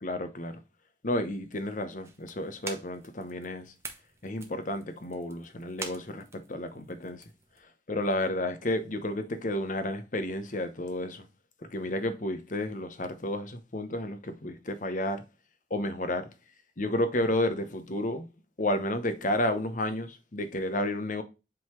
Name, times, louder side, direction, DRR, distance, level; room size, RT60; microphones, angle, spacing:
voice 1, 0.0-0.6 1.0-3.7 4.2-7.2 7.9-11.3 11.6-15.2 15.7-16.3 16.8-18.3 18.6-21.2, left 1 dB, 45° left, 1.0 m, -31 dB
sound 1, 2.0-7.6, right 4 dB, 15° right, 0.9 m, -46 dB
7.7 x 4.0 x 3.1 m
head